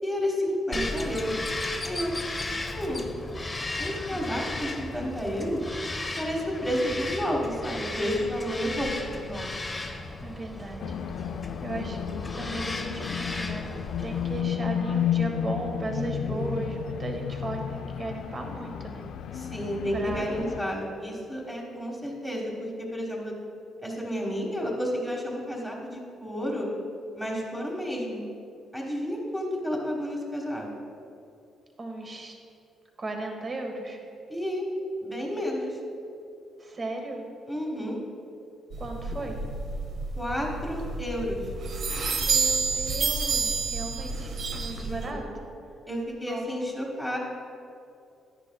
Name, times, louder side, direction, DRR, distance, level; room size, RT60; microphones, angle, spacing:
voice 1, 0.0-1.4 1.8-2.1 2.7-3.1 3.8-5.6 6.2-9.8 15.9-16.6 19.3-23.3 23.8-26.7 27.2-28.2 28.7-30.7 34.3-34.6 35.0-35.8 37.5-38.0 40.2-41.4 44.7-45.2 45.9-47.2, equal, ahead, -4 dB, 1.3 m, -31 dB
Bird vocalization bird call bird song, 0.7-14.4, left 2 dB, 20° left, 0.6 m, -35 dB
voice 2, 8.5-9.0 10.2-10.9 11.6-12.0 12.3-13.7 14.0-19.0 19.9-20.4 20.7-20.9 31.8-32.3 33.0-34.0 36.6-37.2 38.8-39.4 42.1-45.2 46.2-46.5, right 2 dB, 35° right, 2 dB, 1.3 m, -36 dB
sound 1, 10.8-20.6, left 9 dB, 75° left, 0.3 m, -32 dB
sound 2, 38.7-45.1, right 4 dB, 60° right, 0.8 m, -29 dB
10.5 x 9.9 x 2.3 m, 2.5 s
cardioid pair, 105°, 0 cm